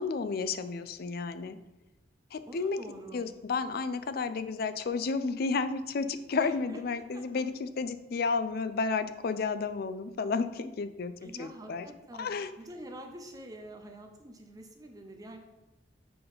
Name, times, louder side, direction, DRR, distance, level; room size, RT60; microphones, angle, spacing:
voice 1, 0.0-1.6 2.3-2.8 3.1-11.9 12.2-12.5, left 4 dB, 60° left, 11 dB, 0.4 m, -32 dB
voice 2, 2.5-3.3 6.4-6.8 7.1-7.2 8.2-8.3 11.2-15.4, right 1 dB, 20° right, 4 dB, 0.6 m, -47 dB
6.8 x 3.7 x 5.4 m, 1.0 s
head